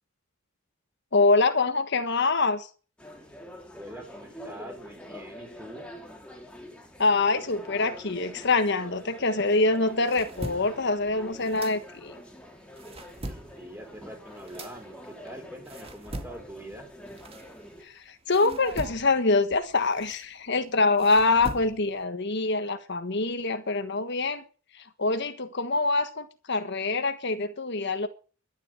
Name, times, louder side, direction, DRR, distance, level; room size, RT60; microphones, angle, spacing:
voice 1, 1.1-2.7 7.0-12.1 17.8-24.4 24.7-28.1, left 3 dB, 60° left, 1.5 m, -25 dB
sound 1, 3.0-17.8, equal, 5° left, 3.5 m, -46 dB
voice 2, 3.7-5.9 13.0-16.9, right 1 dB, 10° right, 4.5 m, -44 dB
sound 2, 9.7-12.3 12.6-17.9 18.3-22.0, right 1 dB, 30° right, 2.1 m, -42 dB
12.0 x 10.5 x 9.1 m
head